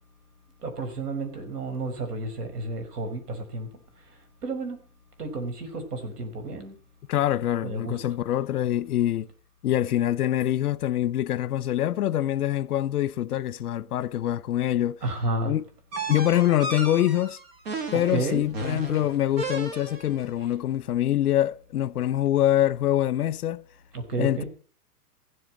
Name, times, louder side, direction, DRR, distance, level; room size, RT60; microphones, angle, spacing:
voice 1, 0.6-3.7 4.4-4.8 5.2-6.8 7.6-8.0 15.0-15.5 17.9-18.5 20.4-20.5 23.9-24.5, right 2 dB, 80° right, 5.5 m, -31 dB
voice 2, 7.1-9.3 9.6-15.0 15.4-15.6 16.1-17.4 17.9-23.6 24.2-24.4, left 12 dB, 70° left, 1.0 m, -25 dB
sound 1, 15.9-20.2, right 2 dB, 40° right, 2.1 m, -34 dB
15.5 x 8.0 x 7.4 m
hypercardioid pair, 165°, 46 cm